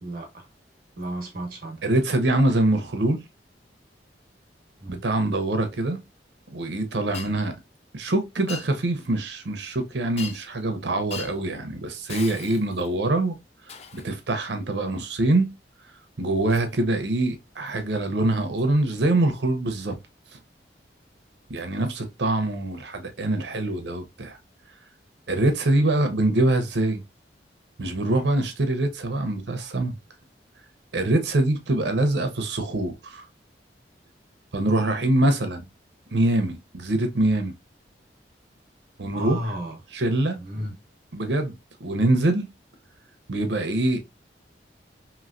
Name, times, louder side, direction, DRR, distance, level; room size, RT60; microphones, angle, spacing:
voice 1, 0.0-0.5 1.0-1.9 4.8-5.0 39.1-39.8 40.4-40.8, right 1 dB, 55° right, 1.1 m, -33 dB
voice 2, 1.8-3.2 4.9-6.0 6.5-7.5 7.9-13.4 13.9-15.5 16.2-19.9 21.5-24.4 25.3-27.0 27.8-30.0 30.9-33.2 34.5-35.7 36.1-37.5 39.0-39.4 39.9-40.4 41.1-42.5 43.3-44.0, right 2 dB, 75° right, 0.7 m, -24 dB
Shatter, 7.1-7.3 8.5-8.7 10.2-10.6 11.1-11.4 12.1-13.0 13.7-14.1 16.5-16.7 17.7-17.8 18.6-18.7 21.6-21.7 22.7-22.9, left 6 dB, 35° left, 0.3 m, -39 dB
3.1 x 2.9 x 2.5 m
head